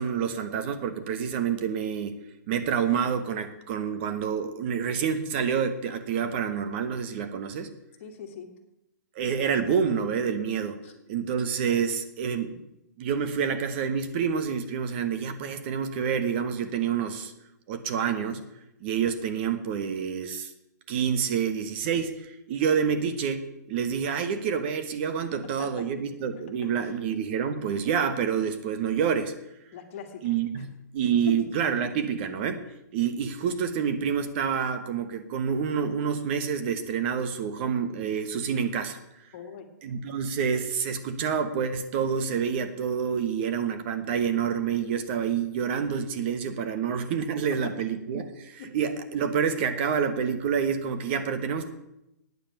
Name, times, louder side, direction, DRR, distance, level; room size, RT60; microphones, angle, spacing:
voice 1, 0.0-2.2 2.5-7.7 9.1-10.8 11.1-12.6 13.0-17.3 17.7-18.4 18.8-20.5 20.9-29.3 30.2-32.6 32.9-39.0 39.8-51.7, right 7 dB, 40° right, 9 dB, 1.1 m, -28 dB
voice 2, 8.0-8.5 10.8-10.9 25.6-25.7 26.6-26.9 29.7-30.6 31.3-31.4 39.3-39.7 47.6-47.7 48.6-48.7, left 8 dB, 45° left, 6 dB, 1.8 m, -40 dB
9.4 x 7.5 x 8.8 m, 0.86 s
hypercardioid pair, 150°, 10 cm